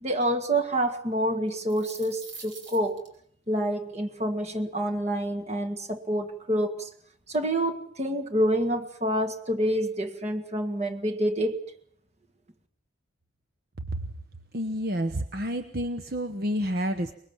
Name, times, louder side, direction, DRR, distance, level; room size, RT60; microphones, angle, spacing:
voice 1, 0.0-3.0 3.5-6.9 7.3-11.6, right 1 dB, 35° right, 1.9 m, -27 dB
sound 1, 1.5-3.1, right 4 dB, 75° right, 6.0 m, -44 dB
voice 2, 14.5-17.1, equal, 50° right, 1.1 m, -29 dB
24.5 x 21.5 x 7.3 m
head